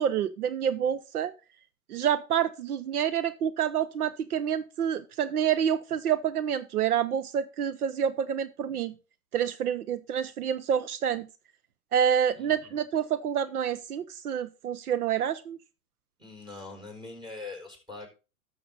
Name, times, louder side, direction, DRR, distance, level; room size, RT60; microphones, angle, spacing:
voice 1, 0.0-1.3 1.9-8.9 9.3-11.3 11.9-15.6, right 9 dB, 80° right, 13 dB, 0.9 m, -28 dB
voice 2, 12.3-12.8 16.2-18.1, left 3 dB, 10° right, 1 dB, 4.2 m, -43 dB
12.5 x 6.8 x 3.9 m, 0.31 s
hypercardioid pair, 115°, 44 cm